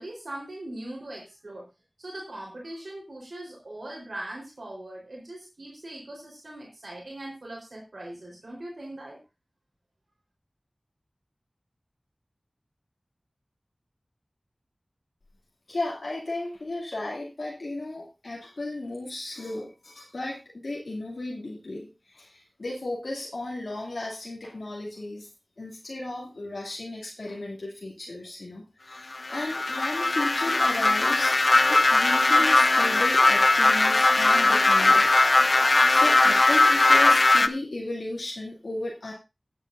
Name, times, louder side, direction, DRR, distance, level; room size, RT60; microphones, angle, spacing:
voice 1, 0.0-1.7 2.0-9.2, right 1 dB, 75° right, -3 dB, 4.1 m, -40 dB
voice 2, 15.7-25.3 25.6-31.4 31.7-35.2 35.9-39.1, left 2 dB, 85° left, -4 dB, 2.5 m, -35 dB
sound 1, 29.1-37.5, left 2 dB, 60° left, 0.6 m, -20 dB
16.5 x 8.9 x 2.6 m, 0.26 s
wide cardioid pair, 55°, 0 cm